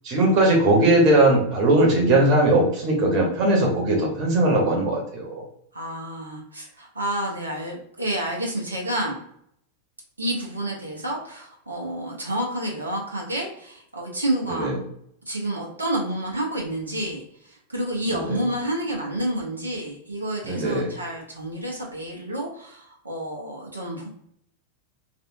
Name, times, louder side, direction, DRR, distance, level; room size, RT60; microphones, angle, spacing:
voice 1, 0.0-5.4 14.5-14.8 18.1-18.4 20.4-20.9, right 1 dB, 40° right, -1 dB, 1.1 m, -19 dB
voice 2, 5.7-9.2 10.2-14.9 15.3-24.1, right 1 dB, 80° right, -2 dB, 0.7 m, -29 dB
3.3 x 2.6 x 2.6 m, 0.71 s
figure-of-eight pair, 90°, 0 cm